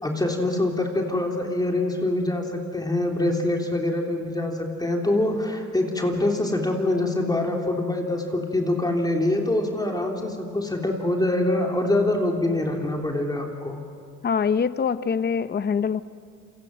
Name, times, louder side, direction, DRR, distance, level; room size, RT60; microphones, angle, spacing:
voice 1, 0.0-13.8, left 1 dB, 15° left, 1 dB, 3.5 m, -25 dB
voice 2, 14.2-16.0, left 6 dB, 35° left, 14 dB, 0.8 m, -24 dB
28.5 x 26.0 x 7.8 m, 2.3 s
cardioid pair, 90°, 30 cm